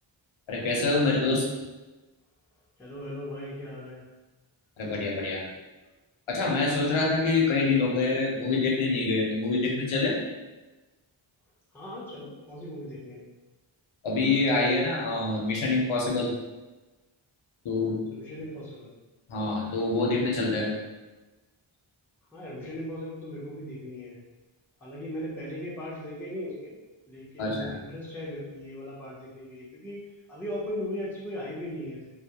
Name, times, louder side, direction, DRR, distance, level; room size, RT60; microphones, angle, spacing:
voice 1, 0.5-1.4 4.8-5.4 6.3-10.1 14.0-16.3 17.6-18.0 19.3-20.7 27.4-27.7, left 3 dB, 75° left, -2 dB, 0.7 m, -26 dB
voice 2, 2.8-4.0 11.7-13.2 18.1-18.9 22.3-24.2 24.8-26.8 27.1-30.0 30.3-32.0, left 1 dB, 5° left, -7 dB, 0.5 m, -38 dB
2.3 x 2.0 x 2.8 m, 1.1 s
wide cardioid pair, 115°, 49 cm